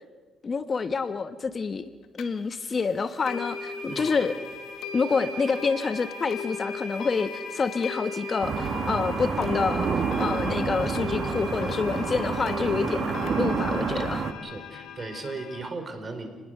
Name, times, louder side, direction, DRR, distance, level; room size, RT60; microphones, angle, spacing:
voice 1, 0.4-4.3 4.9-14.3, left 4 dB, 40° left, 10 dB, 1.2 m, -28 dB
sound 1, 2.2-2.3 3.3-15.7, left 5 dB, 75° left, 1.6 m, -37 dB
sound 2, 8.4-14.3, right 6 dB, 55° right, 1.9 m, -29 dB
voice 2, 14.4-16.3, right 3 dB, 35° right, 6 dB, 4.9 m, -37 dB
29.0 x 20.0 x 6.7 m, 1.3 s
cardioid pair, 90°, 0 cm